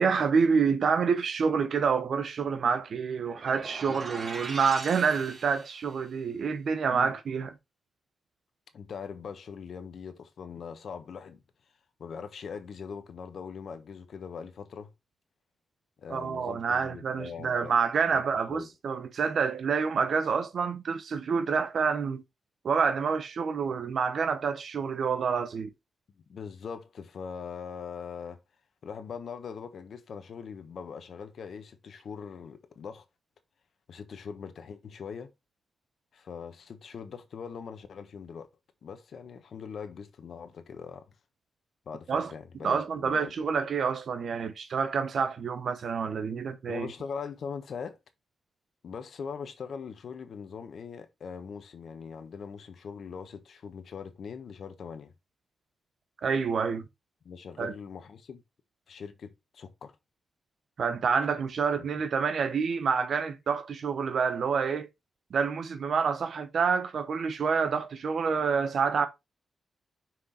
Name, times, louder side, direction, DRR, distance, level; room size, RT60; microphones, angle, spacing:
voice 1, 0.0-7.5 16.1-22.2 22.6-25.7 42.1-42.3 42.6-46.9 56.2-56.9 57.6-57.7 60.8-64.9 65.3-69.1, right 5 dB, 65° right, 1.0 m, -28 dB
sound 1, 3.2-6.0, right 3 dB, 50° right, 2.9 m, -41 dB
voice 2, 8.7-11.4 12.0-14.9 16.0-17.7 18.1-18.2 18.5-18.7 26.3-28.4 28.8-33.0 33.9-35.3 36.1-38.5 38.8-41.1 41.9-43.3 46.7-48.0 48.8-55.1 57.2-58.4 58.9-59.9, left 6 dB, 70° left, 1.3 m, -41 dB
6.0 x 5.0 x 4.2 m
cardioid pair, 75°, 0 cm